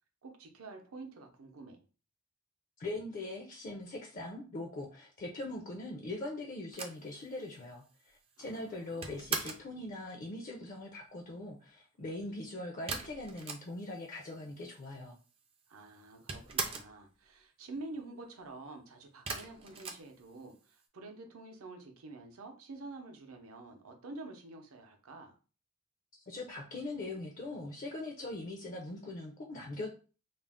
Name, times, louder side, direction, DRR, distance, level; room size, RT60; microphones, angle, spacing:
voice 1, 0.2-1.8 8.4-9.4 15.7-25.4, right 2 dB, 75° right, 0.6 m, -48 dB
voice 2, 2.8-15.2 26.3-29.9, left 2 dB, 40° left, 0.4 m, -41 dB
sound 1, 6.7-9.7 12.9-14.0 14.3-14.4 14.6-15.4 15.7-17.0 19.3-20.7, right 4 dB, 25° right, 0.3 m, -40 dB
2.4 x 2.0 x 3.4 m
head